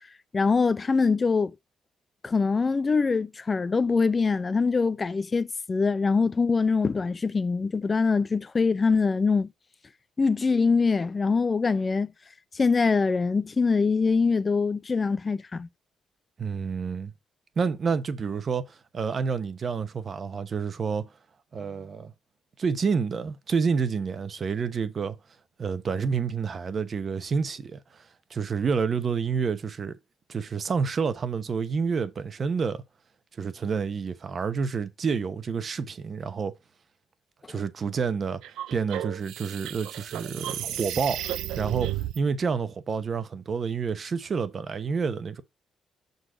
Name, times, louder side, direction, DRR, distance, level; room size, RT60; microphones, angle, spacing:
voice 1, 0.3-1.5 2.2-9.5 10.2-12.1 12.5-15.7, left 4 dB, 30° left, 0.5 m, -23 dB
voice 2, 16.4-17.1 17.6-21.1 21.5-22.1 22.6-25.2 25.6-28.0 28.3-30.0 30.3-32.8 33.4-36.5 37.5-38.4 38.7-41.3 41.6-45.4, right 5 dB, 45° right, 1.0 m, -29 dB
sound 1, 38.4-42.2, right 12 dB, 85° right, 0.5 m, -33 dB
6.4 x 4.0 x 4.9 m
cardioid pair, 90°, 0 cm